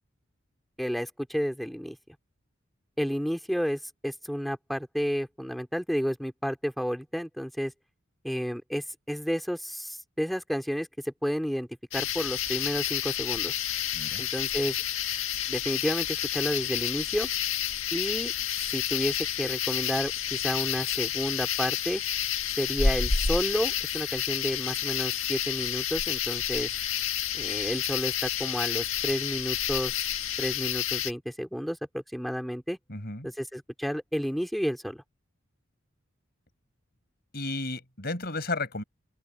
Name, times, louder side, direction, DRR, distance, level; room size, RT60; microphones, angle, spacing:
voice 1, 0.8-2.0 3.0-7.7 8.2-13.5 14.2-14.8 15.5-17.3 17.9-18.3 18.7-22.0 22.6-26.7 27.3-30.1 30.4-32.8 33.2-35.0, equal, ahead, 2.6 m, -31 dB
sound 1, 11.9-31.1, left 9 dB, 80° left, 1.7 m, -30 dB
voice 2, 32.9-33.3 37.3-38.8, left 2 dB, 50° left, 5.7 m, -33 dB
open air
head